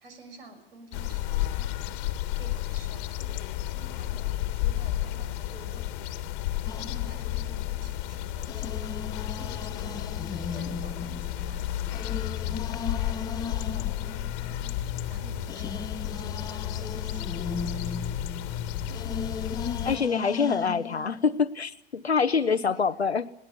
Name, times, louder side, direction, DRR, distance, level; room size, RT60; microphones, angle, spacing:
voice 1, 0.0-6.2 6.7-18.2 22.4-22.8, right 2 dB, 60° right, 7 dB, 6.5 m, -50 dB
sound 1, 0.9-20.0, left 13 dB, 40° left, 1.8 m, -32 dB
sound 2, 6.7-7.9 8.5-14.9 15.4-21.4, left 5 dB, 10° left, 0.9 m, -37 dB
voice 2, 19.8-23.3, left 5 dB, 80° left, 10 dB, 0.9 m, -25 dB
22.0 x 19.0 x 10.0 m, 0.80 s
figure-of-eight pair, 100°, 32 cm